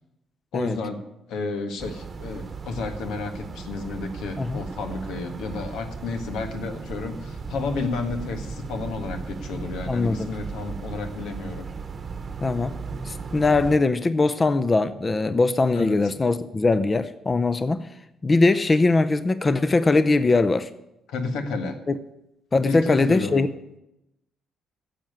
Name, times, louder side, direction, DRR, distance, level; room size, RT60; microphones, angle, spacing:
voice 1, 0.5-1.0 1.3-11.6 15.7-15.9 21.1-21.8 22.7-23.5, left 3 dB, 90° left, 1.5 m, -31 dB
sound 1, 1.8-13.8, right 5 dB, 40° right, 1.0 m, -36 dB
voice 2, 9.9-10.3 12.4-12.8 13.0-17.9 18.2-20.7 22.5-23.5, left 3 dB, 30° left, 0.6 m, -21 dB
10.0 x 7.4 x 9.2 m
cardioid pair, 90°, 0 cm